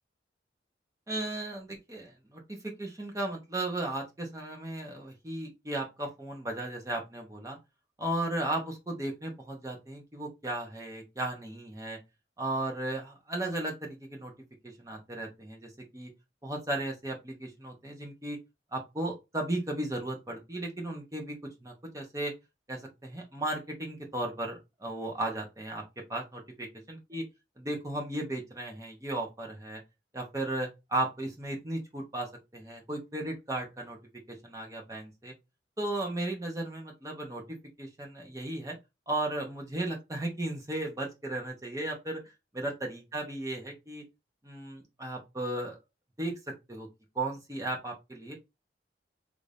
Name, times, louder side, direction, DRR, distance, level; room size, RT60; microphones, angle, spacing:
voice 1, 1.1-7.6 8.0-12.0 12.4-14.3 14.6-16.1 16.4-18.4 18.7-22.3 22.7-25.8 26.1-27.2 27.6-29.8 30.1-34.0 34.3-35.3 35.8-37.4 37.8-38.8 39.1-42.2 42.5-44.0 44.4-45.8 46.2-46.9 47.1-48.4, right 1 dB, 15° right, 0.8 m, -35 dB
3.3 x 2.6 x 3.3 m
head